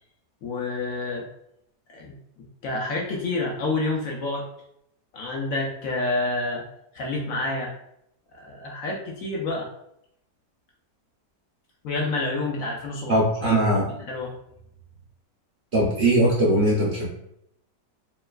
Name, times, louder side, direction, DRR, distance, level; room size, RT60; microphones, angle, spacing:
voice 1, 0.4-1.3 1.9-2.1 2.6-4.5 5.1-6.6 6.9-7.7 8.4-9.7 11.8-13.8 14.1-14.3, left 2 dB, 65° left, -1 dB, 0.9 m, -28 dB
voice 2, 13.1-13.8 15.7-17.1, right 1 dB, 55° right, -5 dB, 0.7 m, -20 dB
4.5 x 3.1 x 2.3 m, 0.76 s
omnidirectional pair, 1.8 m